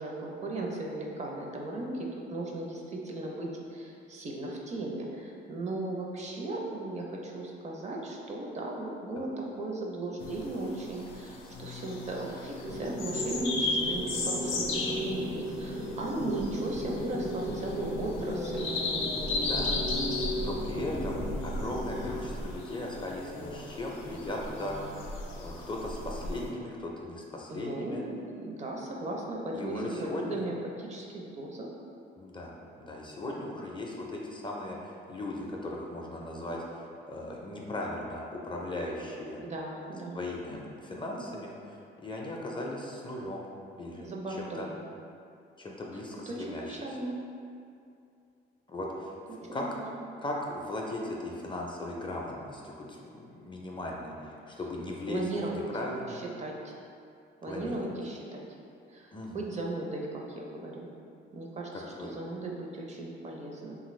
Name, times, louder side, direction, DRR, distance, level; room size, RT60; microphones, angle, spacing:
voice 1, 0.0-18.7 27.5-31.7 39.4-40.2 44.0-44.7 46.3-47.1 49.3-49.7 50.0-50.1 55.1-55.6 56.1-56.5 57.4-58.4 58.9-60.9 61.3-63.8, right 2 dB, 35° right, -1 dB, 0.5 m, -37 dB
sound 1, 10.2-26.5, left 2 dB, 85° left, 0.5 m, -35 dB
sound 2, 12.6-22.3, equal, 75° right, 0.7 m, -37 dB
voice 2, 19.4-19.7 20.4-24.8 25.3-28.0 29.5-30.4 32.2-39.4 40.1-43.4 43.8-44.1 44.4-44.7 45.6-46.8 48.7-49.1 49.5-49.7 50.2-55.2 55.5-56.2 57.5-57.8 59.1-59.4 62.0-62.1, left 1 dB, 25° left, -2 dB, 0.4 m, -38 dB
2.9 x 2.5 x 3.0 m, 2.5 s
cardioid pair, 90°, 20 cm